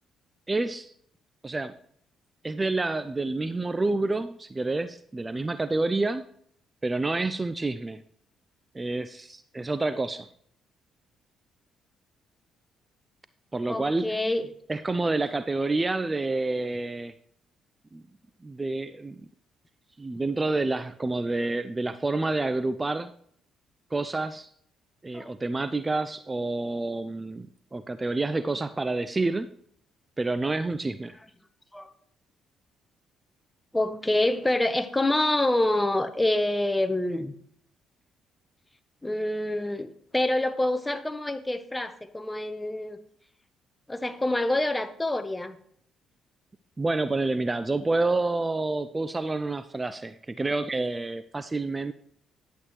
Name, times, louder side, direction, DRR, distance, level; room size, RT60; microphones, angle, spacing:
voice 1, 0.5-0.9 1.4-1.7 2.4-6.2 6.8-8.0 8.7-10.3 13.5-14.2 14.7-17.1 17.9-18.0 18.4-19.2 20.0-23.1 23.9-24.5 25.0-29.5 30.2-31.1 46.8-51.9, right 2 dB, 25° right, 12 dB, 0.5 m, -28 dB
voice 2, 13.7-14.5 25.1-25.3 31.7-31.9 33.7-37.3 39.0-43.0 43.9-45.6, left 1 dB, 15° left, 10 dB, 1.0 m, -26 dB
11.0 x 8.2 x 3.2 m, 0.64 s
hypercardioid pair, 50°, 0 cm